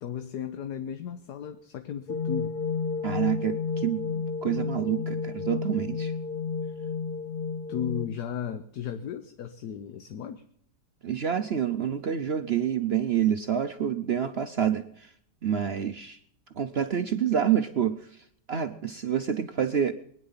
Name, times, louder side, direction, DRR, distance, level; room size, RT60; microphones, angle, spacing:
voice 1, 0.0-2.6 7.7-10.4, left 8 dB, 65° left, 9 dB, 1.3 m, -35 dB
sound 1, 2.1-8.1, left 5 dB, 85° left, 0.5 m, -31 dB
voice 2, 3.0-6.1 11.0-15.1 15.4-16.2 16.6-18.0 18.5-19.9, right 9 dB, 70° right, 9 dB, 0.6 m, -27 dB
22.0 x 9.8 x 5.6 m, 0.65 s
omnidirectional pair, 2.0 m